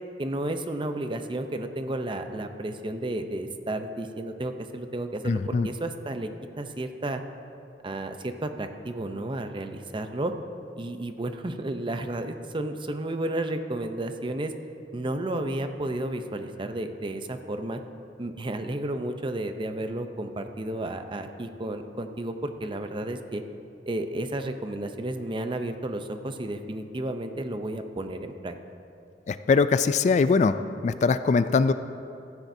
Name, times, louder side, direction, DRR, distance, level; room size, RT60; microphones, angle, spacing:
voice 1, 0.2-6.3 6.6-7.2 7.8-10.3 10.8-14.5 14.9-17.8 18.2-23.4 23.9-28.6, right 1 dB, 30° right, 7 dB, 0.6 m, -32 dB
voice 2, 5.2-5.7 29.3-30.6 30.8-31.7, left 4 dB, 40° left, 12 dB, 0.3 m, -22 dB
15.0 x 14.5 x 2.7 m, 2.6 s
head